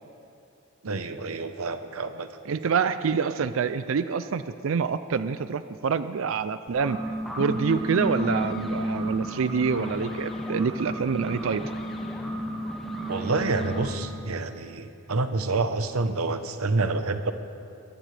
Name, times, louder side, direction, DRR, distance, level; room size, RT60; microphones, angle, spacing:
voice 1, 0.8-2.3 13.1-17.3, right 3 dB, 90° right, 9 dB, 0.9 m, -28 dB
voice 2, 2.5-11.7, right 5 dB, 70° right, 12 dB, 0.4 m, -27 dB
sound 1, 6.7-13.9, equal, ahead, 1.7 m, -32 dB
22.5 x 16.5 x 3.3 m, 2.7 s
head